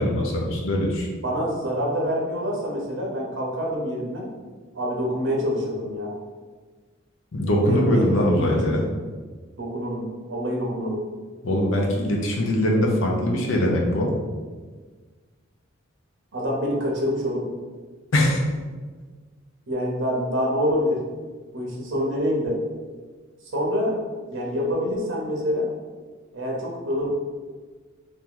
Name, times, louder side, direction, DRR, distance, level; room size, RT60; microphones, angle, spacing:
voice 1, 0.0-1.1 7.3-8.8 11.4-14.1 18.1-18.4, left 1 dB, 70° left, -1 dB, 0.7 m, -22 dB
voice 2, 1.2-4.3 4.7-6.1 7.6-8.9 9.6-11.0 16.3-17.5 19.7-21.0 21.5-22.6 23.5-24.0 24.3-25.7 26.3-27.1, equal, 65° right, -2 dB, 0.9 m, -26 dB
2.9 x 2.7 x 3.7 m, 1.4 s
head